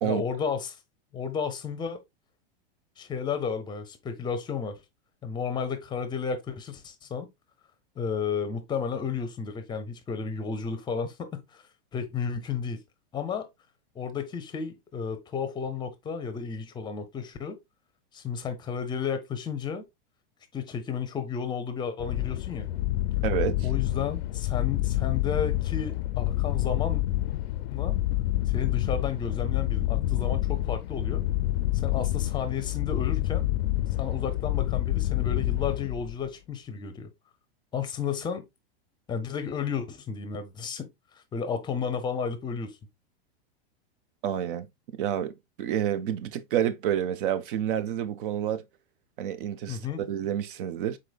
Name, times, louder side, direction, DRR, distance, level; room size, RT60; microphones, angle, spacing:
voice 1, 0.0-0.8 1.1-2.0 3.0-4.8 5.2-7.3 8.0-11.6 11.9-12.8 13.1-13.5 13.9-17.6 18.1-19.8 20.5-22.7 23.6-27.0 27.7-28.0 28.5-31.2 31.7-33.5 34.0-37.1 37.7-38.5 39.1-40.9 41.3-42.8 49.7-50.0, left 6 dB, 15° left, 0.7 m, -32 dB
sound 1, 22.0-36.3, left 15 dB, 70° left, 0.5 m, -28 dB
voice 2, 23.2-23.7 44.2-44.7 44.9-45.3 45.6-48.6 49.2-51.0, right 10 dB, 60° right, 0.7 m, -29 dB
4.9 x 4.0 x 2.3 m
supercardioid pair, 140°, 31 cm